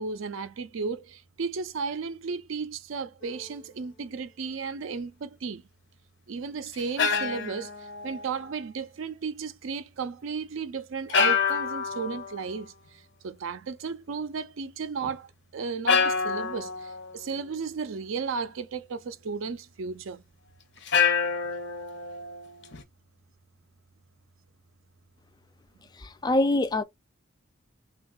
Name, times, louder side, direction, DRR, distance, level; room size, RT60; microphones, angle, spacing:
voice 1, 0.0-5.6 6.3-7.7 8.0-12.7 13.2-20.2, right 5 dB, 75° right, 0.5 m, -34 dB
sound 1, 3.2-3.5 6.7-8.6 11.1-12.5 15.0-15.2 15.9-17.5 20.9-22.8, left 6 dB, 60° left, 0.6 m, -27 dB
voice 2, 26.0-26.8, left 2 dB, 20° left, 0.3 m, -24 dB
3.5 x 2.3 x 2.3 m
head